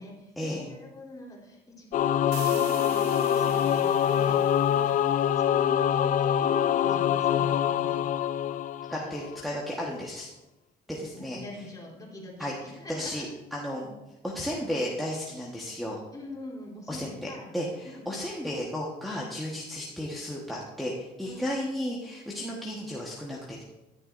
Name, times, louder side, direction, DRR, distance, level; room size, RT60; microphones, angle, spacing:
voice 1, 0.0-5.0 5.3-8.0 10.9-13.3 13.7-14.0 16.1-17.5 17.8-18.0 21.2-21.5, left 1 dB, 20° left, -3 dB, 3.3 m, -44 dB
Singing / Musical instrument, 1.9-9.4, left 9 dB, 50° left, 0.4 m, -25 dB
sound 1, 2.3-5.9, right 11 dB, 80° right, 0.7 m, -45 dB
voice 2, 8.9-10.3 10.9-11.4 12.4-12.5 12.9-13.9 14.2-16.0 16.9-23.6, equal, ahead, -3 dB, 1.3 m, -34 dB
13.0 x 10.5 x 2.6 m, 1.0 s
cardioid pair, 110°, 17 cm